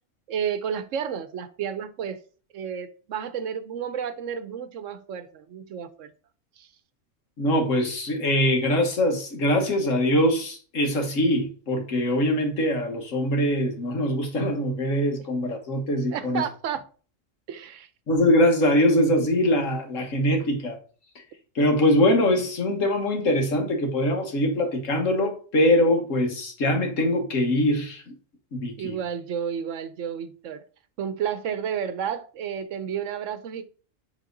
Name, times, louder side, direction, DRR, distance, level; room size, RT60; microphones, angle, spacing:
voice 1, 0.3-2.2 2.5-6.1 6.6-6.7 16.1-16.8 17.5-17.9 28.8-30.6 31.0-33.6, right 8 dB, 75° right, 1.0 m, -31 dB
voice 2, 7.4-16.4 18.1-20.8 21.5-28.0 28.5-29.0, left 1 dB, 75° left, 1.7 m, -23 dB
7.5 x 3.6 x 3.8 m
omnidirectional pair, 1.3 m